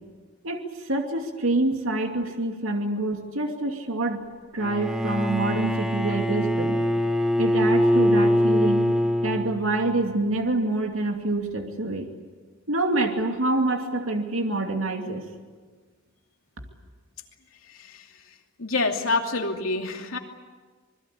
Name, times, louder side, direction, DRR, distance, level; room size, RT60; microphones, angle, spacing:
voice 1, 0.4-4.2 4.5-6.8 7.4-8.9 9.2-12.1 12.7-15.2, right 2 dB, 85° right, 3 dB, 2.5 m, -26 dB
Bowed string instrument, 4.6-9.9, equal, 5° right, 1.3 m, -23 dB
voice 2, 18.6-20.2, left 3 dB, 90° left, 3 dB, 2.7 m, -26 dB
26.0 x 21.5 x 8.4 m, 1.4 s
head